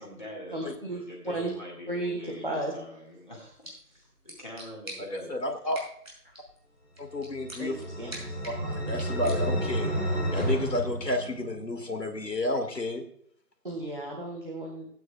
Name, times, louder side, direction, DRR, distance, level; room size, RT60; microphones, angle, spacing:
voice 1, 0.0-5.4, equal, 30° left, -3 dB, 1.9 m, -44 dB
voice 2, 0.5-1.5 1.9-2.7 7.6-8.4 13.6-14.8, right 2 dB, 35° right, 0 dB, 1.4 m, -34 dB
sound 1, 3.4-9.9, right 1 dB, 55° right, 5.4 m, -47 dB
voice 3, 5.3-5.8 7.0-7.8 8.5-9.9 10.3-13.0, left 1 dB, 85° left, 4 dB, 2.3 m, -31 dB
sound 2, 7.2-11.8, equal, 5° left, 3.0 m, -31 dB
18.0 x 9.2 x 2.3 m, 0.66 s
figure-of-eight pair, 170°, 48 cm